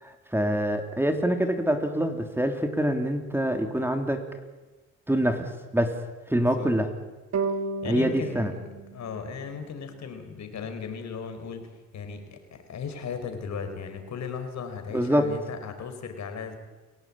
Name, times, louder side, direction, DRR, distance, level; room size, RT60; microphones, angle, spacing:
voice 1, 0.0-4.2 5.1-5.9 6.3-6.9 7.9-8.5 14.9-15.3, equal, 5° right, 5 dB, 3.1 m, -25 dB
voice 2, 6.3-6.7 7.8-16.6, left 6 dB, 65° left, 7 dB, 4.8 m, -37 dB
sound 1, 7.3-10.6, right 4 dB, 60° right, 2.9 m, -34 dB
29.0 x 17.5 x 8.8 m, 1.2 s
cardioid pair, 90°, 30 cm